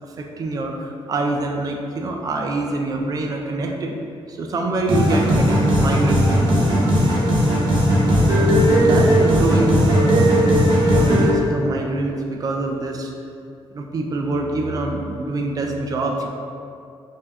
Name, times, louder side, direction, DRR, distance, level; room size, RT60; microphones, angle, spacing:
voice 1, 0.1-4.0 4.3-6.3 8.3-13.1 13.7-16.3, right 2 dB, 35° right, 2 dB, 0.4 m, -25 dB
sound 1, 4.9-11.3, equal, 50° right, 0.9 m, -16 dB
5.6 x 2.6 x 2.4 m, 2.5 s
wide cardioid pair, 175°, 10 cm